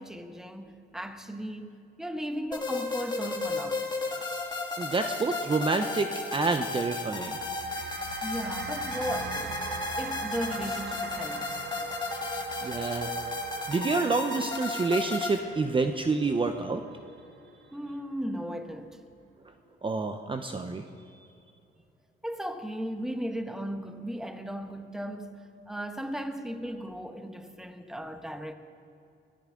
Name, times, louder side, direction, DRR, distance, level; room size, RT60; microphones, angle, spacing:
voice 1, 0.0-3.8 8.2-9.6 10.0-11.5 17.7-19.0 22.2-28.5, equal, ahead, 1.1 m, -36 dB
sound 1, 2.5-15.4, left 3 dB, 20° left, 2.0 m, -34 dB
voice 2, 4.8-7.4 12.6-13.1 13.7-16.8 19.8-20.8, right 3 dB, 25° right, 0.7 m, -28 dB
sound 2, 7.2-17.7, right 5 dB, 55° right, 1.1 m, -43 dB
sound 3, 9.1-18.0, right 4 dB, 75° right, 3.5 m, -46 dB
21.5 x 14.0 x 3.8 m
cardioid pair, 90°, 20 cm